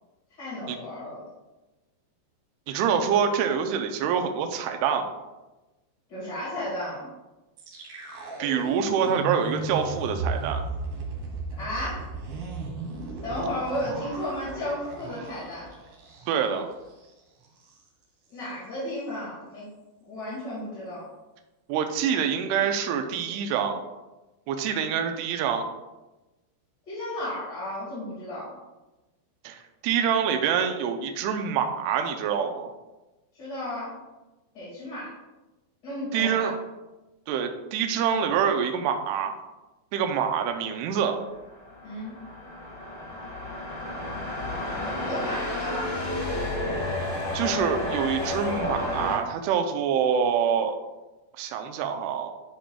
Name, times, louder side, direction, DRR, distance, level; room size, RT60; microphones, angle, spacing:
voice 1, 0.4-1.2 6.1-7.1 11.6-12.1 13.2-15.7 18.3-19.7 20.0-21.0 26.9-28.5 33.4-33.9 34.5-35.1 35.8-36.5 41.8-42.2 44.8-45.9, left 1 dB, 40° left, -9 dB, 1.5 m, -33 dB
voice 2, 2.7-5.1 8.4-10.6 16.3-16.7 21.7-23.8 24.5-25.7 29.4-32.7 36.1-36.6 37.3-39.3 39.9-41.2 47.3-50.8 51.4-52.3, right 7 dB, 85° right, 5 dB, 2.3 m, -26 dB
sound 1, 7.6-16.6 16.9-17.1 17.4-17.8, right 3 dB, 65° right, 2.3 m, -35 dB
sound 2, 41.2-49.2, left 1 dB, 90° left, 0.7 m, -31 dB
10.0 x 5.0 x 2.3 m, 1.1 s
omnidirectional pair, 5.2 m